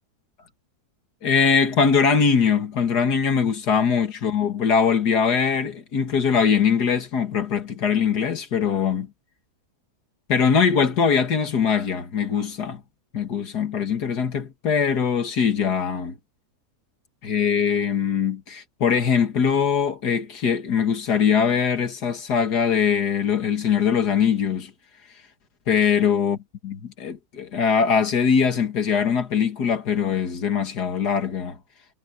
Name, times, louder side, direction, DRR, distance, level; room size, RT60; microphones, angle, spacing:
voice 1, 1.2-9.1 10.3-12.8 13.1-16.1 17.2-24.7 25.7-26.4 26.6-31.6, left 6 dB, 85° left, 2.5 m, -22 dB
omnidirectional pair, 1.7 m